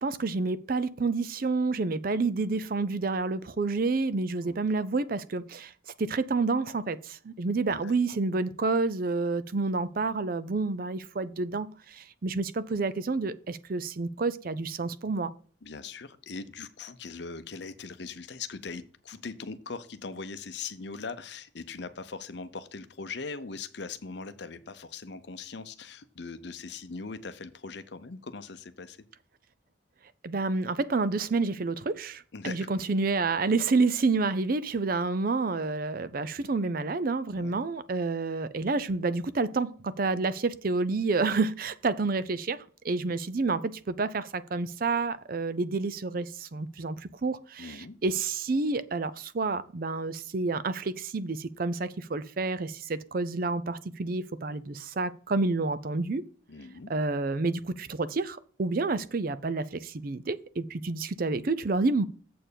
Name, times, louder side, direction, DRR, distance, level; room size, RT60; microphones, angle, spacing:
voice 1, 0.0-5.7 6.0-15.3 30.2-42.6 42.8-56.2 56.9-62.0, right 3 dB, 45° right, 0.5 m, -29 dB
voice 2, 15.6-29.0 32.3-32.7 37.3-37.7 47.6-48.0 56.5-56.9, left 4 dB, 60° left, 0.7 m, -40 dB
7.5 x 4.5 x 6.9 m
head